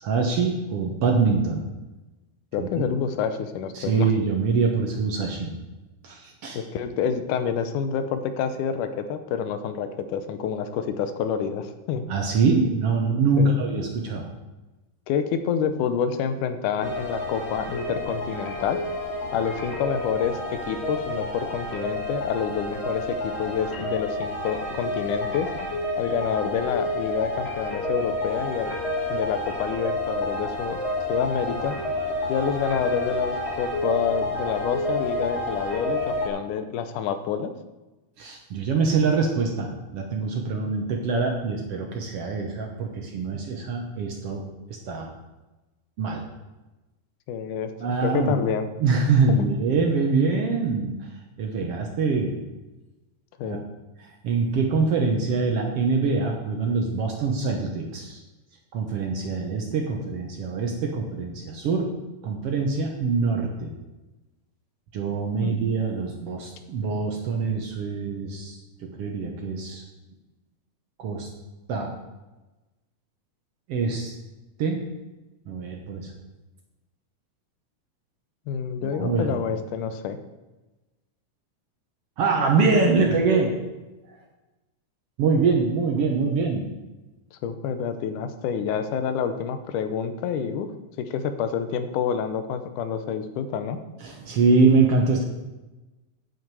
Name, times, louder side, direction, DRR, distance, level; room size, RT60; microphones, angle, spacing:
voice 1, 0.0-1.6 2.6-2.8 3.8-5.5 6.0-6.6 12.1-14.3 38.2-44.4 44.9-45.1 46.0-46.2 47.8-48.4 48.8-50.9 51.4-52.4 53.4-53.6 54.2-58.2 58.7-61.9 62.2-63.7 64.9-68.5 68.8-69.8 71.0-71.3 71.7-71.9 73.7-74.1 74.6-74.8 75.5-76.0 78.8-79.3 82.2-83.5 85.2-86.7 94.0-95.2, right 4 dB, 65° right, 2 dB, 1.7 m, -24 dB
voice 2, 2.5-4.1 6.6-12.1 13.4-13.5 15.1-18.8 19.3-25.5 26.0-28.7 29.1-30.8 31.1-31.8 32.3-37.5 47.3-48.7 49.3-49.5 51.6-51.7 53.4-53.6 65.4-65.6 78.5-80.2 87.3-90.7 91.0-93.8, left 7 dB, 85° left, 9 dB, 2.3 m, -28 dB
sound 1, 16.8-36.3, left 1 dB, 40° left, 0.9 m, -30 dB
9.3 x 7.8 x 4.7 m, 1.1 s
omnidirectional pair, 3.5 m